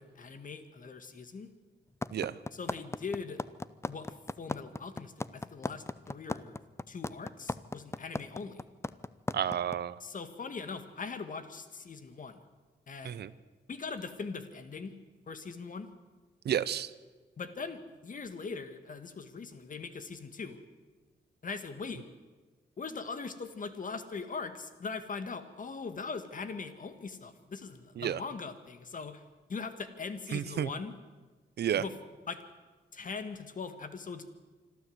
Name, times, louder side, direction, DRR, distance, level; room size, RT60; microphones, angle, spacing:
voice 1, 0.0-1.5 2.5-3.4 3.9-6.6 6.9-8.6 10.0-12.4 12.9-13.2 13.7-14.9 15.3-15.9 17.4-20.6 21.4-22.0 22.8-29.2 29.5-31.0 31.8-32.0 32.3-32.4 32.9-34.3, left 4 dB, 50° left, 10 dB, 1.9 m, -41 dB
sound 1, 2.0-9.8, left 2 dB, 15° left, 0.7 m, -35 dB
voice 2, 9.3-9.9 13.0-13.3 16.5-16.9 28.0-28.2 30.3-30.7 31.6-31.8, right 10 dB, 70° right, 17 dB, 0.8 m, -31 dB
26.0 x 12.5 x 8.0 m, 1.3 s
cardioid pair, 75°, 17 cm